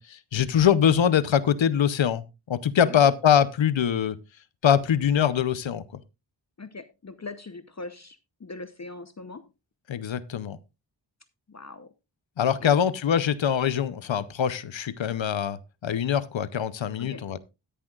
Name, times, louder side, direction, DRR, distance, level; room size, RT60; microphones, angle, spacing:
voice 1, 0.0-4.2 4.6-5.8 9.9-10.6 12.4-17.4, left 9 dB, 90° left, 0.7 m, -23 dB
voice 2, 6.6-9.5 11.5-11.9 12.6-12.8 17.0-17.2, left 3 dB, 35° left, 0.8 m, -41 dB
13.5 x 10.0 x 2.4 m
cardioid pair, 50°, 44 cm